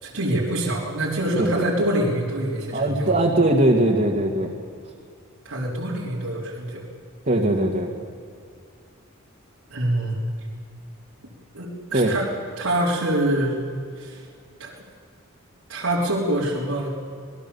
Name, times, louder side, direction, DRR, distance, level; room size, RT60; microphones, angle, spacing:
voice 1, 0.0-3.2 5.4-6.8 9.7-10.2 11.5-12.3 12.6-13.6 14.0-14.3 14.6-14.8 15.7-16.9, right 1 dB, 85° right, -5 dB, 3.8 m, -25 dB
voice 2, 2.7-4.5 7.3-7.9 11.9-12.1, right 1 dB, 40° right, -1 dB, 1.9 m, -20 dB
26.5 x 19.5 x 7.1 m, 2.4 s
head